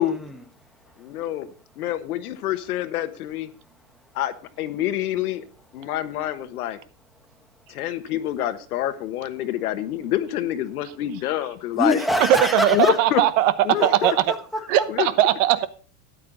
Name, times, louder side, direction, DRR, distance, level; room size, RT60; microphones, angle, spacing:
voice 1, 0.0-1.5 1.7-1.9 3.5-4.2 5.8-5.9 7.0-7.9 11.7-13.0 13.8-14.9, left 1 dB, ahead, 1.2 m, -29 dB
voice 2, 1.0-1.5 1.8-3.5 4.1-5.4 5.7-6.8 7.7-12.0 12.7-13.2 13.6-13.9 14.9-15.1, left 12 dB, 75° left, 1.3 m, -26 dB
voice 3, 12.5-13.5 13.8-14.1 14.7-15.7, right 13 dB, 60° right, 1.1 m, -19 dB
13.0 x 9.5 x 3.9 m
supercardioid pair, 145°, 44 cm